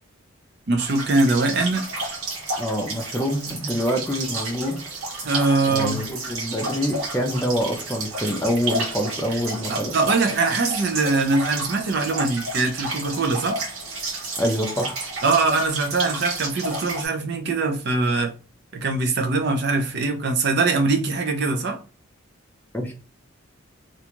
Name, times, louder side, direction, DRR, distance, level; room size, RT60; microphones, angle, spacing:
voice 1, 0.7-1.8 5.2-6.1 9.7-13.6 15.2-18.3 18.7-21.8, right 3 dB, 50° right, 0.5 m, -22 dB
sound 1, 0.8-17.1, right 2 dB, 85° right, 0.9 m, -31 dB
voice 2, 2.6-4.8 5.7-9.9 14.4-15.1 22.7-22.9, equal, 10° left, 0.4 m, -26 dB
2.5 x 2.3 x 2.9 m
head